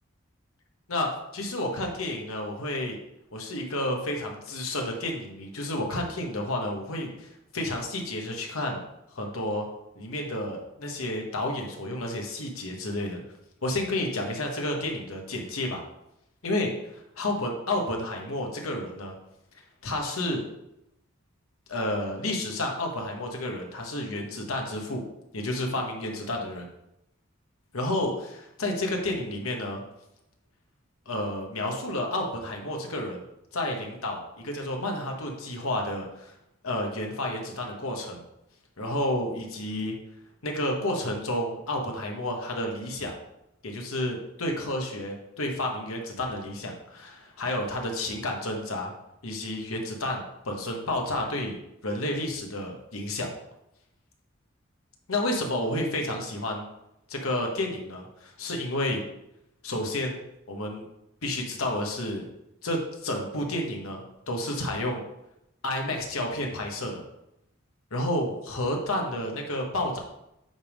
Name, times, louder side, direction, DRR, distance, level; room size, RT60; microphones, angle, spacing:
voice 1, 0.9-3.0 3.3-8.8 9.1-9.7 9.9-13.2 13.6-15.8 16.4-16.7 17.2-19.1 19.8-20.4 21.7-25.0 25.3-26.7 27.7-28.3 28.6-29.8 31.1-33.2 33.5-36.3 36.6-38.2 38.8-39.9 40.4-43.1 43.6-48.9 49.2-53.3 55.1-56.6 57.1-59.0 59.6-60.2 60.5-60.8 61.2-62.3 62.6-65.0 65.6-67.0 67.9-70.0, left 1 dB, 90° left, 1 dB, 1.2 m, -30 dB
8.0 x 3.6 x 4.9 m, 0.85 s
head